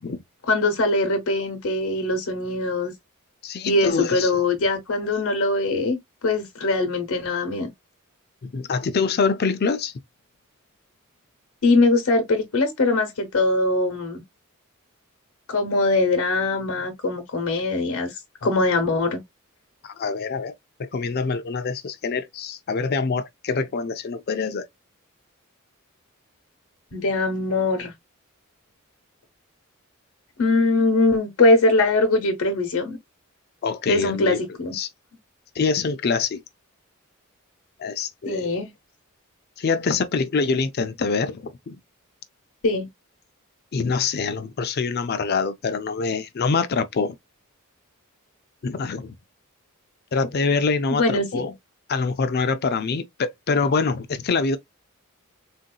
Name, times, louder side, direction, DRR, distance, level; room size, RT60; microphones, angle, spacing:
voice 1, 0.5-2.9 3.6-6.0 6.2-7.7 11.6-14.2 15.5-18.1 18.4-19.2 26.9-27.9 30.4-33.0 33.9-34.8 38.3-38.7 42.6-42.9 50.9-51.5, left 2 dB, 80° left, 0.9 m, -22 dB
voice 2, 3.4-4.4 8.4-9.9 18.4-18.5 19.8-20.5 20.8-24.7 33.6-34.4 34.7-34.9 35.6-36.4 37.8-38.5 39.6-41.8 43.7-47.2 48.6-49.1 50.1-51.5 51.9-54.6, left 4 dB, 50° left, 0.5 m, -25 dB
3.8 x 2.6 x 2.2 m
head